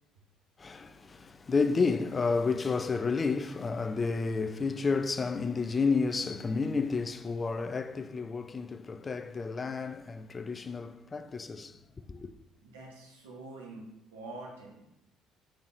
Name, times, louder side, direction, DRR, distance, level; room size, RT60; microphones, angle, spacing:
voice 1, 0.6-11.8 12.1-12.3, left 4 dB, 30° left, 0.3 m, -31 dB
voice 2, 12.6-13.8 14.1-14.9, right 2 dB, 85° right, 1.0 m, -45 dB
3.5 x 3.3 x 4.1 m
hypercardioid pair, 60°, 0 cm